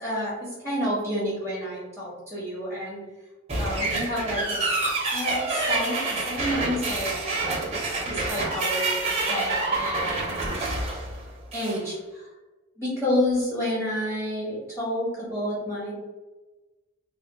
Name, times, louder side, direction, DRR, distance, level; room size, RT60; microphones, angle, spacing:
voice 1, 0.0-3.0 3.6-4.6 5.1-7.1 7.4-7.6 7.9-10.9 11.5-12.3 12.8-15.9, left 1 dB, 10° left, -8 dB, 1.2 m, -30 dB
sound 1, 3.5-11.8, right 3 dB, 30° right, 0.7 m, -27 dB
3.5 x 2.3 x 3.5 m, 1.2 s
head